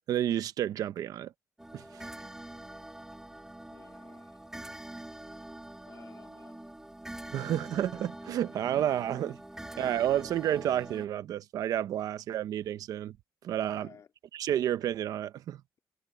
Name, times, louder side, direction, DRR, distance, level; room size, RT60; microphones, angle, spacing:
voice 1, 0.1-1.3 1.7-2.1 7.3-9.4 9.8-13.2 13.4-13.9 14.3-15.6, right 11 dB, 80° right, 1.0 m, -30 dB
sound 1, 1.6-11.1, right 1 dB, 10° right, 2.9 m, -45 dB
voice 2, 3.7-4.4 5.8-6.6 9.6-9.7 13.8-14.1, left 7 dB, 55° left, 4.3 m, -56 dB
cardioid pair, 100°, 6 cm